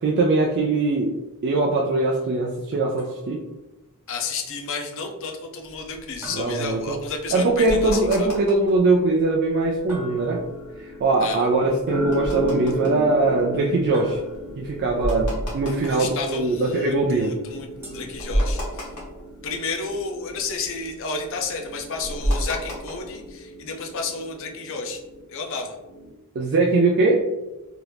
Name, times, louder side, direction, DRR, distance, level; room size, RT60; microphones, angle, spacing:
voice 1, 0.0-1.2 1.4-3.4 6.3-7.0 7.3-10.4 11.0-14.2 14.6-17.4 26.4-27.2, right 3 dB, 50° right, 0 dB, 0.3 m, -21 dB
sound 1, 3.0-3.6 6.2-7.5 9.9-10.8 13.9-14.8 17.8-18.8, right 1 dB, 10° right, 0.9 m, -44 dB
voice 2, 4.1-8.3 11.2-11.5 15.7-18.9 19.4-25.0 25.3-25.8, left 4 dB, 60° left, 3 dB, 0.5 m, -31 dB
sound 2, 5.7-8.9 9.3-9.4 9.6-9.9 10.4-17.1 17.5-17.6 17.9-20.0 20.2-23.3, equal, 85° left, 1.1 m, -30 dB
sound 3, 10.1-25.2 25.8-26.1, equal, 15° left, 0.7 m, -34 dB
2.8 x 2.4 x 3.3 m, 1.0 s
head